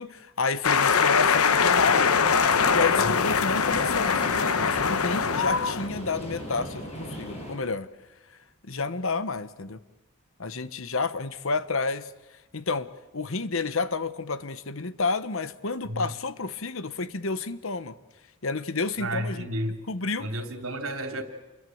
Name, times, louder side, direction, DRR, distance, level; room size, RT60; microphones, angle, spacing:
voice 1, 0.0-7.9 8.6-9.8 10.4-12.1 12.5-18.0 18.4-19.5 19.9-20.3, left 4 dB, 65° left, 1.1 m, -30 dB
sound 1, 0.6-5.9, left 6 dB, 90° left, 1.0 m, -22 dB
sound 2, 1.9-7.6, equal, 30° left, 6.6 m, -37 dB
voice 2, 19.0-19.8 20.2-21.2, right 1 dB, 75° right, 3.2 m, -32 dB
28.5 x 22.5 x 7.9 m
head